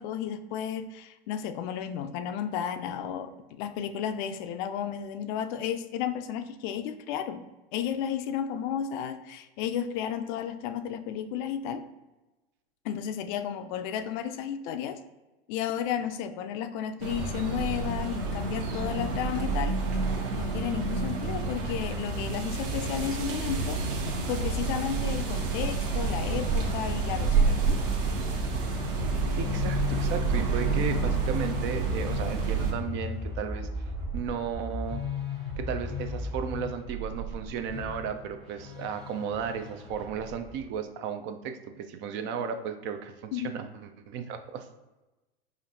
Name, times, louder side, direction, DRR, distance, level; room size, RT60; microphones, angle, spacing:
voice 1, 0.0-7.4 7.7-11.8 12.8-15.0 15.5-19.7 20.3-23.8 24.3-27.8 43.3-43.5, left 9 dB, 55° left, 9 dB, 0.4 m, -33 dB
sound 1, 17.0-32.7, right 4 dB, 70° right, 1.0 m, -29 dB
sound 2, 28.9-40.8, left 4 dB, 20° right, 1.4 m, -36 dB
voice 2, 29.4-33.7 34.1-35.0 35.6-44.7, right 7 dB, 40° right, 8 dB, 0.4 m, -34 dB
5.0 x 2.5 x 2.7 m, 1.1 s
hypercardioid pair, 100°, 29 cm